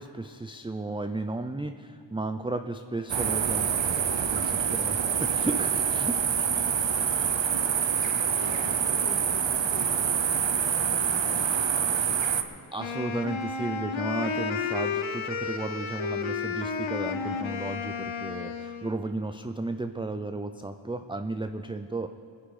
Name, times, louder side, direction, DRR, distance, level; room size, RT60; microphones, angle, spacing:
voice 1, 0.0-6.2 12.7-22.1, right 2 dB, 10° right, 8 dB, 0.4 m, -34 dB
sound 1, 3.1-12.4, right 7 dB, 65° right, 0.9 m, -26 dB
voice 2, 8.4-8.7 9.0-12.0, left 1 dB, 30° left, -1 dB, 2.7 m, -45 dB
Wind instrument woodwind instrument, 12.8-19.0, left 5 dB, 70° left, 1.0 m, -32 dB
22.0 x 10.0 x 4.9 m, 2.3 s
wide cardioid pair, 70°, 48 cm